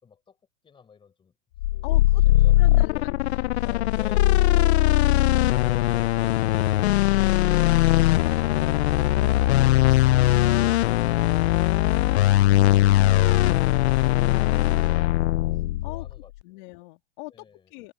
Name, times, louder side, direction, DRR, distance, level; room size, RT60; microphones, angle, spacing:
voice 1, 0.0-0.4 0.6-1.3 1.7-3.3 4.0-6.2 14.0-16.7 17.3-17.7, left 6 dB, 15° left, 4.8 m, -50 dB
sound 1, 1.6-16.2, left 16 dB, 85° left, 0.7 m, -20 dB
voice 2, 1.8-2.2 2.6-3.9 4.3-4.4 5.1-5.7 9.5-9.8 13.3-13.6 15.8-16.1 16.4-17.9, left 24 dB, 50° left, 2.6 m, -42 dB
supercardioid pair, 150°, 32 cm